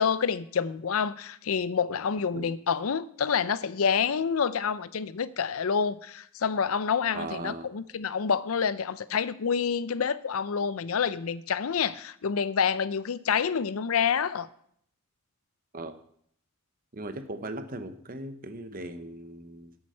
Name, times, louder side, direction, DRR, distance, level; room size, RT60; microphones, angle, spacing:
voice 1, 0.0-14.5, left 6 dB, 75° left, 16 dB, 0.5 m, -28 dB
voice 2, 7.1-7.7 15.7-15.9 16.9-19.8, right 2 dB, 40° right, 9 dB, 1.0 m, -38 dB
8.7 x 8.7 x 6.4 m, 0.66 s
head